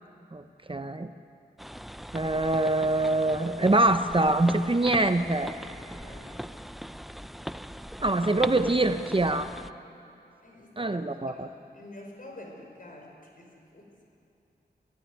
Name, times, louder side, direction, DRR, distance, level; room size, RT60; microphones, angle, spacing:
voice 1, 0.3-1.1 2.1-5.6 8.0-9.5 10.8-11.5, right 2 dB, 30° right, 8 dB, 0.8 m, -24 dB
sound 1, 1.6-9.7, equal, ahead, 0.5 m, -40 dB
voice 2, 5.9-6.7 10.4-13.9, left 1 dB, 50° left, 0 dB, 5.6 m, -48 dB
27.0 x 15.5 x 9.6 m, 2.6 s
wide cardioid pair, 75°, 18 cm